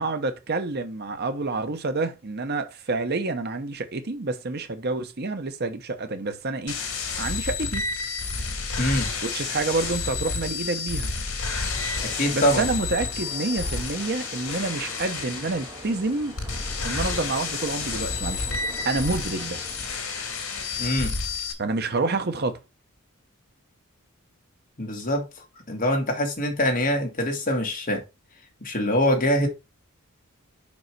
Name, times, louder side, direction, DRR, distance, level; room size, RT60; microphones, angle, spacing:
voice 1, 0.0-6.8 7.2-7.8 9.2-11.1 12.3-16.3 16.8-18.5 18.8-19.6 21.6-22.6, right 3 dB, 45° right, 0.9 m, -28 dB
sound 1, 6.7-21.5, left 4 dB, 80° left, 2.2 m, -30 dB
voice 2, 8.8-9.1 12.0-12.6 20.8-21.1 24.8-25.3 25.7-28.0 28.6-29.5, equal, 40° left, 2.0 m, -24 dB
sound 2, 11.9-20.0, right 1 dB, 25° right, 2.5 m, -44 dB
5.4 x 5.3 x 4.6 m
head